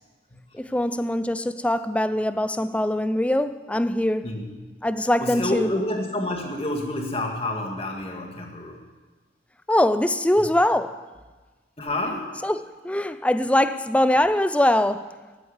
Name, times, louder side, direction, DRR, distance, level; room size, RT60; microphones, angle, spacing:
voice 1, 0.5-4.4 4.8-5.7 9.7-11.0 12.4-15.1, left 1 dB, 5° left, 0.4 m, -22 dB
voice 2, 5.0-8.8 11.8-12.3, left 1 dB, 30° left, 2.1 m, -29 dB
15.0 x 9.3 x 8.0 m
head